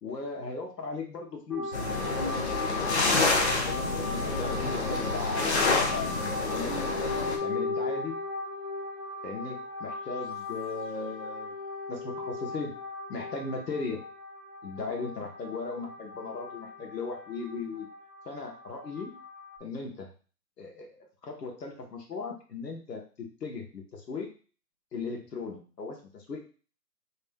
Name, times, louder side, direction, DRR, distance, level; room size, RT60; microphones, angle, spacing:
voice 1, 0.0-1.8 3.5-6.8 7.4-8.2 9.2-11.5 11.9-12.7 13.1-14.0 14.6-17.9 18.2-19.1 19.6-20.1 20.6-24.3 24.9-26.4, left 4 dB, 75° left, 1 dB, 1.4 m, -37 dB
sound 1, 1.5-19.6, left 3 dB, ahead, 0.3 m, -37 dB
sound 2, 1.7-7.4, left 3 dB, 45° left, 0.7 m, -28 dB
3.2 x 2.8 x 3.6 m, 0.38 s
hypercardioid pair, 160°, 49 cm